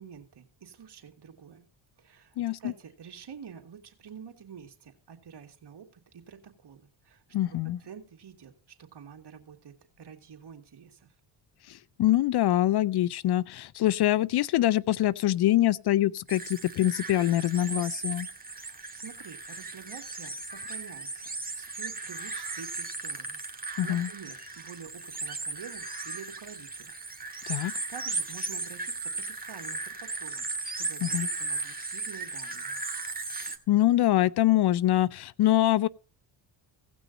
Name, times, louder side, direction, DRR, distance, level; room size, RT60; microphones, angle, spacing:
voice 1, 0.0-1.7 2.0-8.5 8.8-11.1 18.4-21.3 21.5-23.4 23.8-27.0 27.4-32.8, right 7 dB, 55° right, 2.3 m, -48 dB
voice 2, 2.4-2.7 7.3-7.8 11.7-18.3 23.8-24.1 27.5-27.7 31.0-31.3 33.4-35.9, left 14 dB, 55° left, 0.5 m, -24 dB
sound 1, 16.3-33.6, right 3 dB, 15° right, 1.7 m, -36 dB
17.0 x 6.1 x 4.0 m
supercardioid pair, 55°, 49 cm